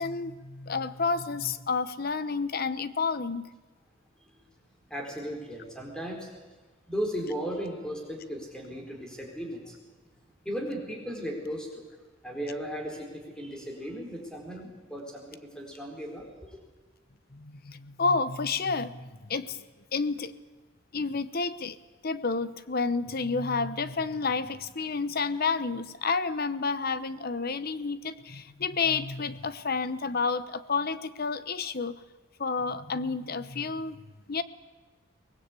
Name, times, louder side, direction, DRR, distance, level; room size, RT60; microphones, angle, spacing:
voice 1, 0.0-3.5 17.3-19.6 19.9-20.4 20.9-21.8 22.0-32.0 32.4-34.0 34.3-34.4, left 4 dB, 50° left, 14 dB, 0.9 m, -30 dB
voice 2, 4.9-6.3 6.9-9.8 10.4-11.8 12.2-16.6, equal, 5° left, 1 dB, 4.4 m, -36 dB
23.5 x 19.5 x 8.4 m, 1.3 s
head